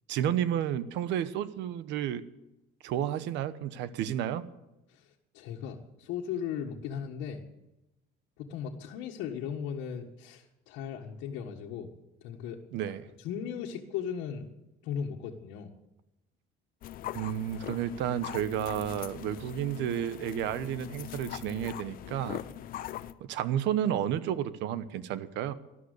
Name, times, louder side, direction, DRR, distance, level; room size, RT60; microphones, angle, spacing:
voice 1, 0.1-2.2 2.8-4.4 12.7-13.0 17.1-22.4 23.2-25.5, right 10 dB, 65° right, 14 dB, 1.0 m, -31 dB
voice 2, 4.9-7.4 8.4-11.9 12.2-12.6 13.2-14.5 14.8-15.7, left 8 dB, 75° left, -1 dB, 1.7 m, -37 dB
sound 1, 16.8-23.1, left 12 dB, 45° left, 0.8 m, -41 dB
13.5 x 12.5 x 8.2 m, 0.93 s
cardioid pair, 155°, 20 cm